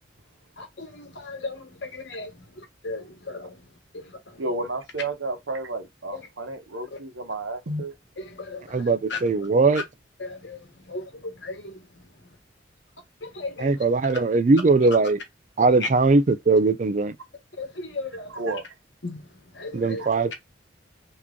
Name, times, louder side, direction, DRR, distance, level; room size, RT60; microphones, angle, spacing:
voice 1, 0.6-3.6 3.9-4.4 6.1-6.3 6.9-7.0 8.2-9.2 10.2-11.8 13.2-13.7 15.8-15.9 17.6-18.3 19.0-19.3 19.5-20.0, left 3 dB, 70° left, 1.3 m, -36 dB
voice 2, 4.4-7.9 18.3-18.6 20.0-20.1, right 2 dB, 85° right, 1.0 m, -31 dB
voice 3, 8.7-9.8 13.6-15.2 15.6-17.2 19.7-20.3, right 3 dB, 40° right, 0.4 m, -20 dB
3.6 x 3.0 x 3.6 m
head